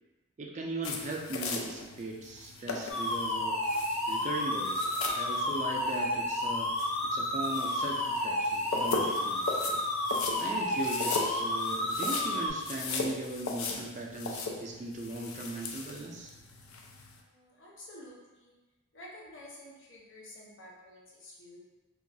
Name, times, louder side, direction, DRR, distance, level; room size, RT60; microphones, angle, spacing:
voice 1, 0.4-3.6 4.1-4.9 5.1-6.8 7.0-9.4 10.4-16.3, right 2 dB, 35° right, 0 dB, 0.3 m, -38 dB
sound 1, 0.8-17.2, left 4 dB, 90° left, 0.4 m, -38 dB
sound 2, 2.9-12.5, left 1 dB, 30° left, 0.5 m, -31 dB
voice 2, 17.2-18.5 18.9-21.6, left 1 dB, 65° left, -5 dB, 0.7 m, -50 dB
3.0 x 2.3 x 2.6 m, 1.1 s
head